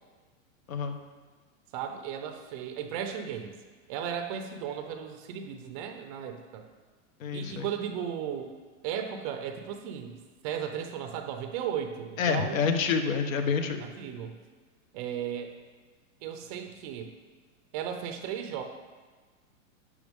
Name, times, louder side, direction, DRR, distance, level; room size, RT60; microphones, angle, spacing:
voice 1, 0.7-1.0 7.2-7.7 12.2-13.8, left 6 dB, 70° left, 6 dB, 1.3 m, -28 dB
voice 2, 1.7-3.6 3.9-6.6 7.3-8.5 8.8-10.2 10.4-12.6 13.8-14.4 14.9-15.6 16.2-17.1 17.7-18.6, right 8 dB, 25° right, 7 dB, 0.5 m, -35 dB
12.5 x 8.5 x 3.6 m, 1.4 s
supercardioid pair, 155°, 41 cm